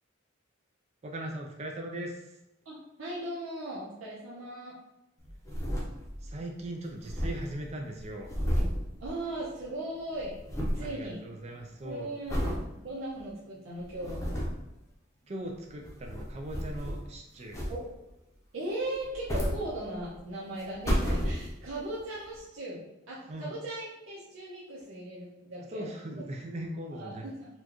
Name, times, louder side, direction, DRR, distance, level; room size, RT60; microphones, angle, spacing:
voice 1, 1.0-2.2 6.2-8.3 10.8-12.1 15.3-17.6 23.3-23.5 25.7-27.3, right 1 dB, 30° right, 1 dB, 0.4 m, -39 dB
voice 2, 2.6-4.8 9.0-10.4 10.7-11.2 11.8-14.5 17.7-17.9 18.5-26.2 26.9-27.5, right 1 dB, 85° right, -7 dB, 0.8 m, -38 dB
sound 1, 5.2-6.4 6.6-6.7 6.9-9.7 9.9-10.9 11.4-11.7 12.3-12.6 13.2-13.3 13.8-14.7 15.7-17.1 17.5-18.1 18.9-20.2 20.6-21.8 22.4-22.5, equal, 15° left, 0.7 m, -32 dB
4.2 x 2.4 x 2.9 m, 0.90 s
head